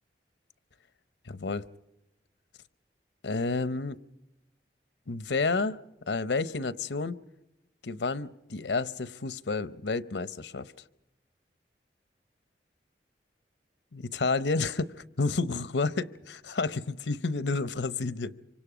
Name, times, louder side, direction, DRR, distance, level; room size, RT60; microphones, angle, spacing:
voice 1, 1.3-1.7 3.2-4.0 5.1-5.8 6.1-7.2 7.8-10.7 13.9-18.3, left 3 dB, 85° left, 15 dB, 0.8 m, -30 dB
26.5 x 25.0 x 5.0 m, 0.91 s
head